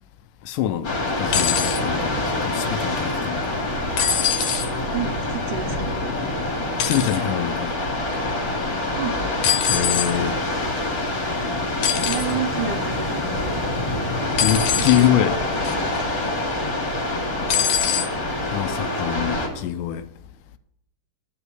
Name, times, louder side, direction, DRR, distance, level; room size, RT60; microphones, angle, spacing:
voice 1, 0.5-3.5 6.8-7.7 9.7-10.4 14.4-15.4 18.5-20.1, left 11 dB, 85° left, 2.2 m, -24 dB
sound 1, 0.8-19.5, left 2 dB, 40° left, 2.5 m, -26 dB
sound 2, 1.3-1.8 4.0-4.7 6.8-7.2 9.4-10.1 11.8-12.3 14.4-15.1 15.6-16.0 17.5-18.1 19.1-19.2, left 8 dB, 65° left, 2.3 m, -23 dB
voice 2, 4.9-6.0 8.9-9.2 12.1-13.2 14.8-15.1 15.5-16.1 18.8-19.2, right 8 dB, 75° right, 2.6 m, -31 dB
10.0 x 5.4 x 7.9 m
omnidirectional pair, 3.7 m